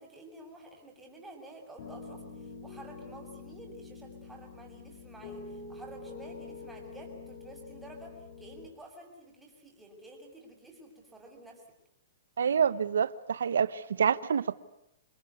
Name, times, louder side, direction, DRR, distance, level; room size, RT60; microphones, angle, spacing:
voice 1, 0.0-11.6, right 1 dB, 5° right, 7.2 m, -50 dB
Piano, 1.8-8.7, left 4 dB, 55° left, 7.3 m, -46 dB
voice 2, 12.4-14.5, right 7 dB, 85° right, 1.1 m, -27 dB
27.5 x 21.0 x 9.7 m
hypercardioid pair, 140°, 0 cm